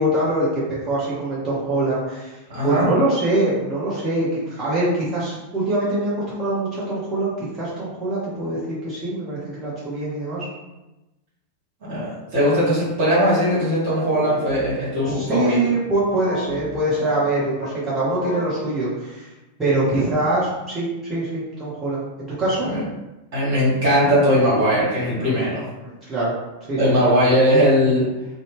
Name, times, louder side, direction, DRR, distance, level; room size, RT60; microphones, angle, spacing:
voice 1, 0.0-2.4 2.6-10.5 15.0-19.3 19.6-22.0 22.4-22.7 25.2-25.5 25.8-26.3 26.7-27.0, right 1 dB, 15° right, -10 dB, 1.1 m, -23 dB
voice 2, 2.5-2.9 11.9-15.6 20.0-20.1 22.6-22.8 23.3-25.6 26.8-28.0, equal, 50° right, -8 dB, 1.4 m, -19 dB
sound 1, 13.6-15.7 16.1-18.4, left 1 dB, 60° left, 0.9 m, -34 dB
2.7 x 2.1 x 3.3 m, 1.0 s
figure-of-eight pair, 90°, 0 cm